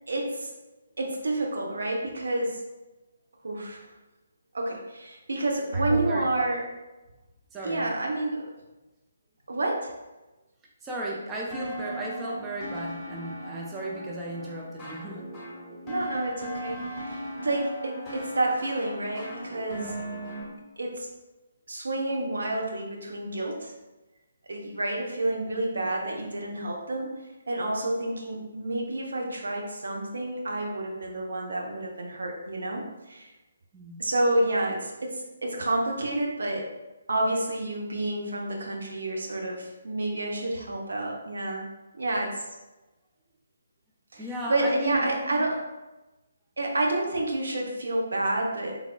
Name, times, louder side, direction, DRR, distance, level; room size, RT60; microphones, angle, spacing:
voice 1, 0.1-0.5 1.0-2.6 3.4-3.9 4.5-6.6 7.6-8.4 9.5-9.9 15.9-19.9 20.8-21.1 21.7-23.7 24.5-27.1 27.5-33.3 34.0-36.6 37.1-41.6 41.9-42.4 44.1-45.6 46.6-48.8, right 2 dB, 60° right, 0 dB, 0.7 m, -29 dB
voice 2, 5.7-6.5 7.5-7.9 10.8-15.2 33.7-34.1 44.2-45.4, right 1 dB, 10° right, -3 dB, 0.5 m, -35 dB
sound 1, 11.5-20.4, equal, 5° left, 1.3 m, -38 dB
3.6 x 3.3 x 2.2 m, 1.1 s
figure-of-eight pair, 140°, 0 cm